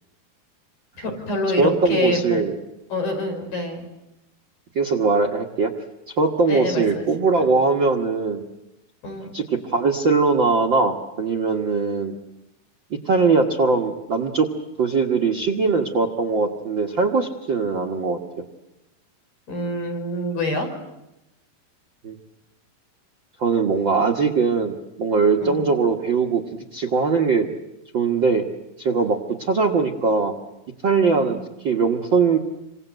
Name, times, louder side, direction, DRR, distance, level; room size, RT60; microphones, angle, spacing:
voice 1, 1.0-2.4 2.9-3.9 6.5-7.1 7.4-7.5 9.0-9.3 19.5-20.7 25.4-25.6 31.1-31.5, left 1 dB, 60° left, 3 dB, 6.7 m, -26 dB
voice 2, 1.6-2.5 4.7-5.7 6.2-8.4 9.3-12.1 12.9-14.5 14.8-18.2 22.0-22.2 23.4-26.4 26.7-27.5 27.9-28.4 28.8-30.3 30.8-31.4 31.6-32.4, right 4 dB, 90° right, 2 dB, 1.0 m, -21 dB
28.0 x 25.5 x 8.0 m, 0.91 s
omnidirectional pair, 4.7 m